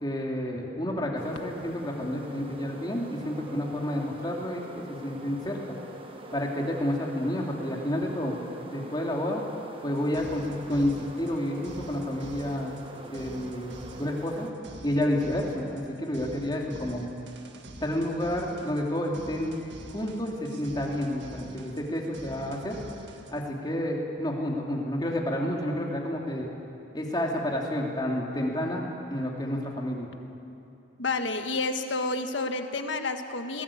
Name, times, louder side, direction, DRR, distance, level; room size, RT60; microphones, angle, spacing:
voice 1, 0.0-5.8 6.3-8.4 8.6-9.4 9.8-12.8 13.1-13.7 14.0-14.5 14.8-17.0 17.8-19.6 19.9-22.8 23.3-26.5 26.9-30.1, left 1 dB, 20° left, -1 dB, 2.9 m, -30 dB
sound 1, 1.1-14.5, right 1 dB, 30° right, 1.5 m, -44 dB
sound 2, 10.0-23.4, right 1 dB, 65° right, 1.8 m, -46 dB
voice 2, 31.0-33.6, left 3 dB, 75° left, 6 dB, 1.6 m, -30 dB
23.0 x 19.5 x 8.6 m, 2.7 s
head